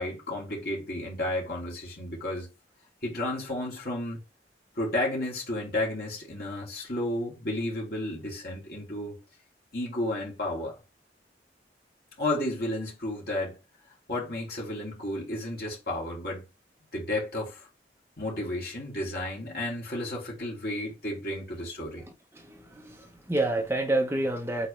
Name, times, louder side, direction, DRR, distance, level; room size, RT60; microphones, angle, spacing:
voice 1, 0.0-2.5 3.0-4.2 4.7-9.2 9.7-10.7 12.2-13.6 14.1-16.4 16.9-17.7 18.2-22.0, left 1 dB, 60° left, 3.1 m, -32 dB
voice 2, 22.3-24.7, right 2 dB, 15° right, 1.0 m, -28 dB
8.1 x 4.4 x 3.3 m
head